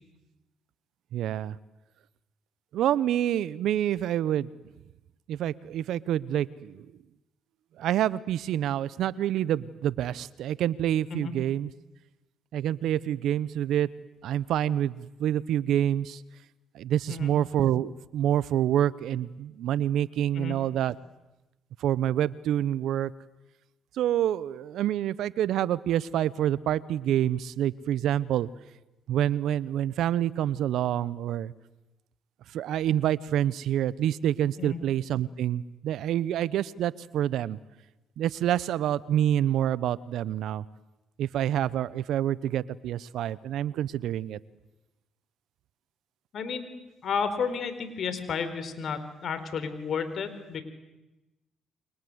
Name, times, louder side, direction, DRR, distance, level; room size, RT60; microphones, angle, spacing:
voice 1, 1.1-1.6 2.7-4.5 5.3-6.9 7.8-11.7 12.5-13.9 14.2-16.2 16.7-20.9 21.8-23.1 24.0-28.5 29.1-31.5 32.5-37.6 38.2-40.6 41.2-44.4, right 11 dB, 70° right, 19 dB, 0.9 m, -27 dB
voice 2, 46.3-46.7 47.0-50.6, left 6 dB, 60° left, 11 dB, 4.5 m, -32 dB
29.5 x 24.5 x 8.1 m, 1.0 s
hypercardioid pair, 55°, 0 cm